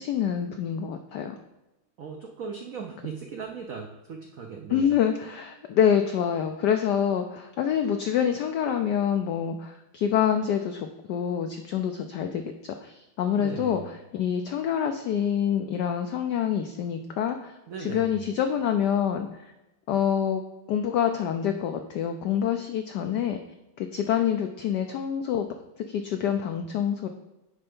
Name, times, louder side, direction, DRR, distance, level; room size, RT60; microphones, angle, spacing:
voice 1, 0.0-1.4 4.7-12.4 12.8-17.5 17.8-19.5 19.9-20.4 20.7-23.4 23.8-25.5 25.9-27.1, left 8 dB, 85° left, 6 dB, 0.9 m, -26 dB
voice 2, 2.0-4.9 13.4-13.9 17.7-18.1, right 6 dB, 85° right, 2 dB, 0.7 m, -38 dB
9.8 x 3.3 x 5.3 m, 0.99 s
omnidirectional pair, 2.4 m